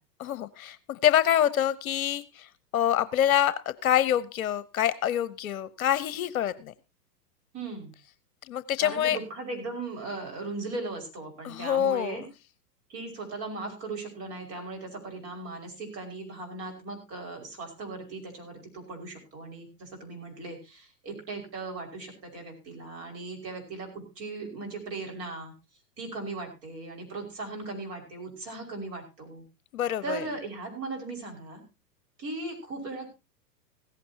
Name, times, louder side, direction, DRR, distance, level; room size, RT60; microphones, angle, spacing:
voice 1, 0.2-6.7 8.5-9.2 11.4-12.2 29.7-30.3, left 10 dB, 60° left, 16 dB, 1.0 m, -26 dB
voice 2, 7.5-7.9 8.8-12.2 12.9-25.5 26.0-29.4 30.0-31.6 32.2-33.1, right 3 dB, 30° right, 3 dB, 5.6 m, -38 dB
16.5 x 15.0 x 2.9 m, 0.28 s
hypercardioid pair, 110°, 48 cm